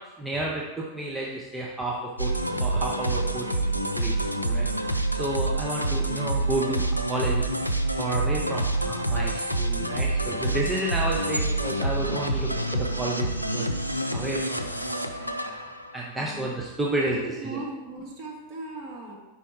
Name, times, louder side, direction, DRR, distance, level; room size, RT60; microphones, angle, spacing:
voice 1, 0.2-2.3 2.6-4.7 5.1-6.8 7.1-7.6 8.0-13.7 14.1-17.6, right 2 dB, 10° right, -4 dB, 0.8 m, -31 dB
sound 1, 2.2-16.1, right 2 dB, 90° left, 0.4 m, -27 dB
voice 2, 17.0-19.1, right 2 dB, 40° right, -4 dB, 1.9 m, -38 dB
5.5 x 4.4 x 4.7 m, 1.0 s
figure-of-eight pair, 90°, 0 cm